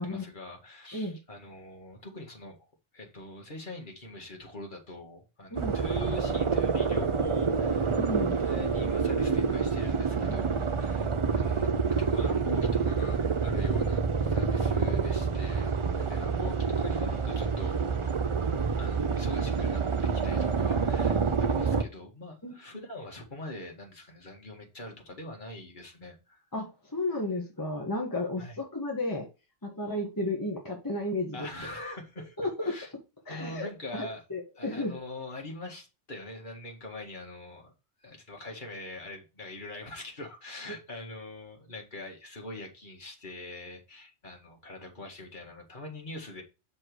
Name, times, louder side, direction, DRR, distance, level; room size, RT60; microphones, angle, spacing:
voice 1, 0.0-2.7 2.9-7.9 8.4-11.7 12.0-17.8 18.8-26.5 28.4-28.6 31.3-32.4 32.6-32.9 33.3-34.2 34.6-37.7 38.0-46.4, left 2 dB, 45° left, 2.0 m, -43 dB
sound 1, 5.6-21.8, right 5 dB, 35° right, 0.5 m, -27 dB
voice 2, 7.9-8.4 10.3-10.4 22.4-22.5 26.5-26.7 26.9-29.3 29.6-31.5 32.4-32.7 33.3-34.9, left 2 dB, 15° left, 1.6 m, -33 dB
6.3 x 4.2 x 4.7 m
omnidirectional pair, 1.2 m